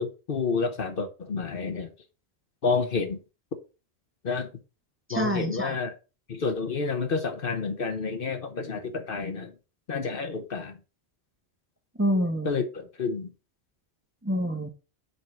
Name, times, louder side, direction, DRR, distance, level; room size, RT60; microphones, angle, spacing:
voice 1, 0.0-1.9 2.6-3.2 4.2-4.5 5.1-5.9 6.3-9.5 9.9-10.8 12.4-13.3, left 4 dB, 55° left, 1.1 m, -29 dB
voice 2, 5.1-5.8 12.0-12.6 14.2-14.7, equal, 10° right, 1.0 m, -27 dB
5.5 x 4.6 x 5.7 m
omnidirectional pair, 1.1 m